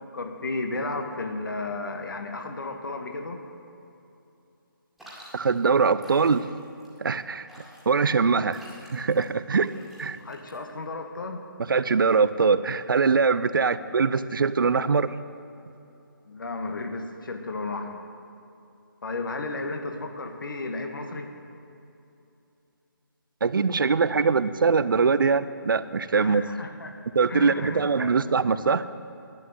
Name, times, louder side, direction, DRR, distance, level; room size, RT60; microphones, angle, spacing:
voice 1, 0.0-3.4 10.2-11.4 13.5-13.7 16.3-18.0 19.0-21.3 26.1-26.9 27.3-28.5, left 3 dB, 65° left, 5 dB, 1.5 m, -34 dB
sound 1, 5.0-10.9, equal, ahead, 2.1 m, -50 dB
voice 2, 5.3-6.5 7.0-7.5 7.9-8.6 8.9-9.7 10.0-10.2 11.6-15.1 23.4-26.5 27.2-28.8, right 5 dB, 65° right, 15 dB, 0.5 m, -22 dB
11.5 x 8.6 x 7.8 m, 2.8 s
figure-of-eight pair, 150°, 12 cm